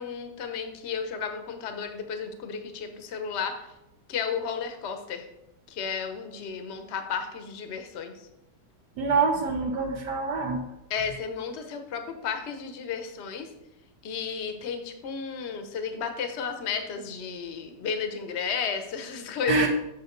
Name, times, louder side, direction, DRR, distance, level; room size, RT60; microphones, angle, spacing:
voice 1, 0.0-3.6 4.1-5.3 5.7-8.1 10.9-13.5 14.0-19.7, left 6 dB, 45° left, 6 dB, 1.0 m, -33 dB
voice 2, 9.0-10.6 19.5-19.7, right 4 dB, 70° right, 1 dB, 1.4 m, -25 dB
7.3 x 7.0 x 3.9 m, 0.88 s
omnidirectional pair, 1.9 m